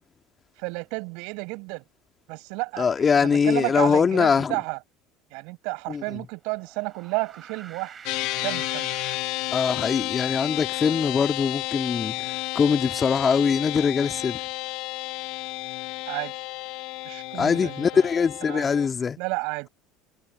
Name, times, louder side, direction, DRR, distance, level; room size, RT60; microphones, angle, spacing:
voice 1, 0.6-1.8 2.3-2.9 3.1-4.8 5.3-8.0 8.4-8.9 16.1-16.4 17.0-18.0 18.5-18.7 19.2-19.7, right 30 dB, 65° right, 5.5 m, -31 dB
voice 2, 2.8-4.6 5.9-6.2 9.5-14.4 17.4-19.2, left 6 dB, 30° left, 2.0 m, -22 dB
sound 1, 6.5-10.2, right 7 dB, 35° right, 4.9 m, -45 dB
sound 2, 8.1-18.9, left 22 dB, 65° left, 1.0 m, -32 dB
hypercardioid pair, 70°, 0 cm